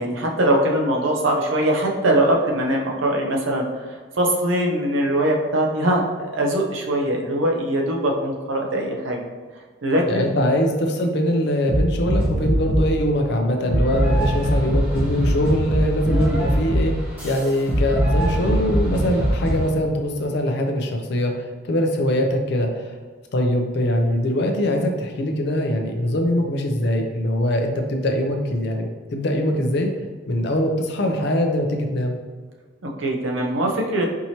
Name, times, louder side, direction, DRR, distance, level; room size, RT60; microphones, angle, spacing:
voice 1, 0.0-3.6 4.2-9.3 9.8-10.3 16.1-16.4 33.0-34.0, right 1 dB, 75° right, 0 dB, 0.7 m, -21 dB
voice 2, 10.1-16.9 17.2-23.0 23.3-28.9 29.1-29.9 30.3-32.2, equal, 55° left, 3 dB, 0.5 m, -22 dB
sound 1, 11.7-13.0 13.7-19.7, equal, 10° right, 1.1 m, -22 dB
4.6 x 2.8 x 2.8 m, 1.5 s
head